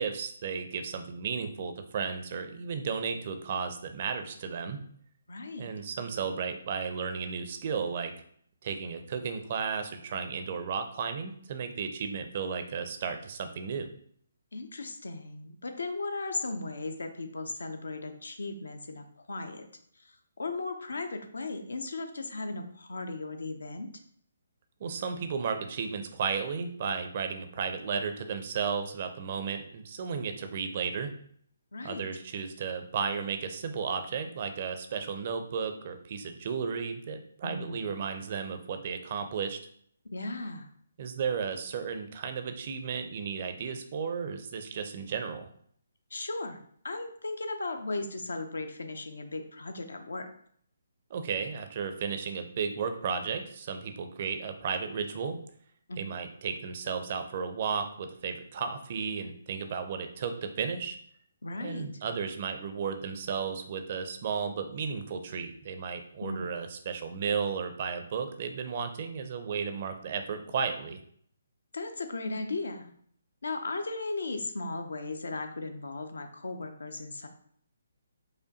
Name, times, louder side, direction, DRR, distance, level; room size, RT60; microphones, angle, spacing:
voice 1, 0.0-4.8 5.6-8.1 8.6-13.9 24.8-31.1 31.8-39.6 41.0-45.5 51.1-55.4 56.0-61.0 61.6-71.0, right 6 dB, 40° right, 7 dB, 0.4 m, -34 dB
voice 2, 5.3-5.7 14.5-19.6 20.0-23.9 31.7-32.0 37.4-37.9 40.1-40.7 46.1-46.6 46.8-50.3 55.9-56.1 61.4-61.9 66.2-66.5 71.7-72.9 73.4-77.3, left 3 dB, 70° left, 7 dB, 0.5 m, -36 dB
4.9 x 2.2 x 2.7 m, 0.63 s
figure-of-eight pair, 140°, 0 cm